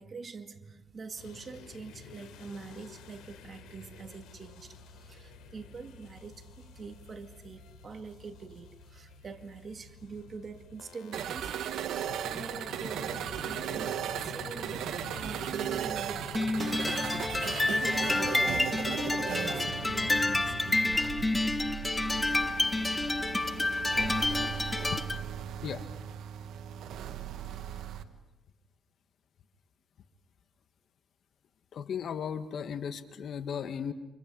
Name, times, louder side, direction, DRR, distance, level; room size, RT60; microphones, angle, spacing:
voice 1, 0.0-11.5 12.2-21.1 23.1-23.2, right 4 dB, 40° right, 7 dB, 2.1 m, -45 dB
sound 1, 1.2-20.7, left 6 dB, 90° left, 4.3 m, -48 dB
sound 2, 11.1-28.0, right 9 dB, 80° right, 1.5 m, -37 dB
sound 3, 16.3-25.2, left 2 dB, 15° left, 0.9 m, -29 dB
voice 2, 31.7-33.9, left 7 dB, 60° left, 9 dB, 1.8 m, -36 dB
29.5 x 27.5 x 5.5 m, 1.0 s
cardioid pair, 90°, 0 cm